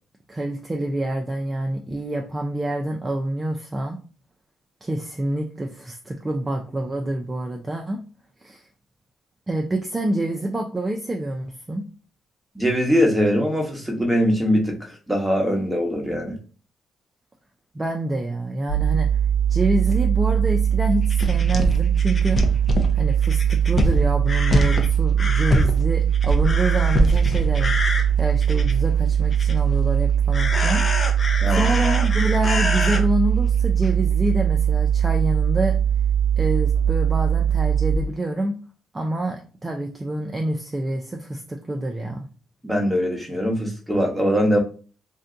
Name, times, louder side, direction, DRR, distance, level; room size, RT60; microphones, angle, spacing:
voice 1, 0.3-4.0 4.8-8.0 8.4-8.7 9.5-11.9 17.7-19.1 19.5-22.5 22.9-27.7 28.2-30.8 31.5-35.7 36.4-38.6 38.9-42.3, right 1 dB, 20° right, 2 dB, 0.5 m, -27 dB
voice 2, 12.5-16.4 31.4-31.7 42.6-44.6, equal, 5° right, 0 dB, 1.0 m, -22 dB
sound 1, 18.7-38.0, right 9 dB, 70° left, 0.8 m, -20 dB
sound 2, 21.0-28.9 29.3-29.8 30.3-33.0 33.8-33.9 34.3-34.4, left 2 dB, 30° left, 0.6 m, -25 dB
2.6 x 2.2 x 3.7 m, 0.38 s
cardioid pair, 90°, 0 cm